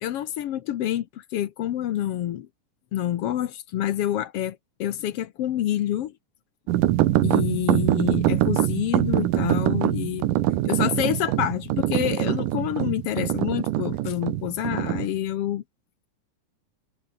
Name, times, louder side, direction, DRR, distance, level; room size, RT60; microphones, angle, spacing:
voice 1, 0.0-2.5 2.9-6.1 7.2-10.3 10.6-15.6, left 12 dB, 65° left, 1.5 m, -27 dB
sound 1, 6.7-15.1, right 15 dB, 85° right, 2.6 m, -24 dB
omnidirectional pair, 3.7 m